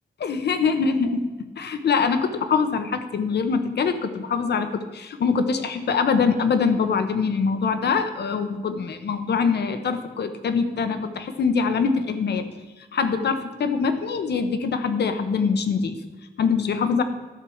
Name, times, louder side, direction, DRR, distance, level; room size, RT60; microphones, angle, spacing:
voice 1, 0.2-12.5 12.9-15.9 16.4-17.0, left 5 dB, 70° left, 9 dB, 1.0 m, -23 dB
12.0 x 4.7 x 7.1 m, 1.2 s
cardioid pair, 95°, 18 cm